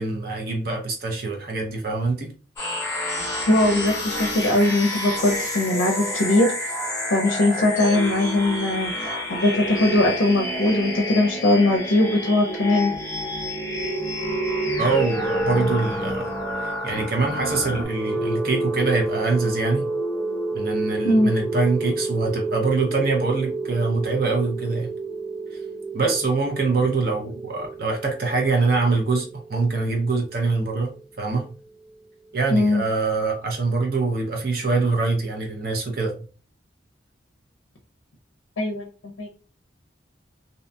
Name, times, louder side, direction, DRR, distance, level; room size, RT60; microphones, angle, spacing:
voice 1, 0.0-2.3 14.8-16.3 16.6-19.9 20.5-24.9 25.5-25.6 25.9-30.9 31.2-31.4 32.3-36.2, right 3 dB, 50° right, 0.6 m, -24 dB
sound 1, 2.6-17.8, equal, 15° left, 0.8 m, -28 dB
voice 2, 3.5-6.5 7.1-8.9 9.3-12.9 21.0-21.3 32.5-32.8 38.6-38.9 39.2-39.3, left 1 dB, 70° left, 0.5 m, -20 dB
sound 2, 17.6-31.5, right 2 dB, ahead, 0.3 m, -30 dB
2.6 x 2.2 x 2.6 m
head